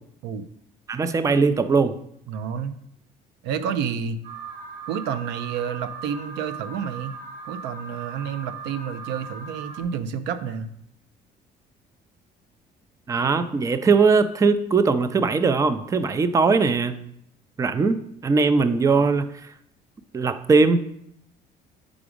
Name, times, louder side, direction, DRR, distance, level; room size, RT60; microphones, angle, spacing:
voice 1, 0.9-1.9 13.1-17.0 17.6-19.3 20.1-20.8, right 4 dB, 20° right, 11 dB, 0.4 m, -20 dB
voice 2, 2.3-2.7 3.4-4.2 4.9-7.1 7.4-10.7, right 7 dB, 85° right, 11 dB, 0.5 m, -29 dB
Alarm, 4.2-9.8, right 5 dB, 70° right, 1.7 m, -39 dB
5.0 x 4.8 x 5.0 m, 0.73 s
cardioid pair, 110°, 17 cm